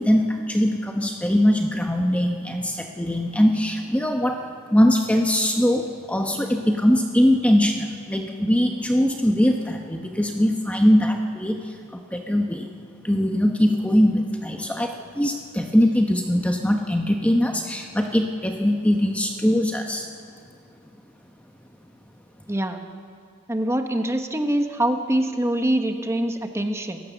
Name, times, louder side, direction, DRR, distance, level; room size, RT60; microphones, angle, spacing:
voice 1, 0.0-4.4 4.7-12.7 13.0-20.1, equal, 5° left, 3 dB, 0.9 m, -21 dB
voice 2, 22.5-22.8 23.5-27.0, right 1 dB, 15° right, 5 dB, 1.2 m, -24 dB
27.5 x 15.5 x 7.1 m, 2.3 s
head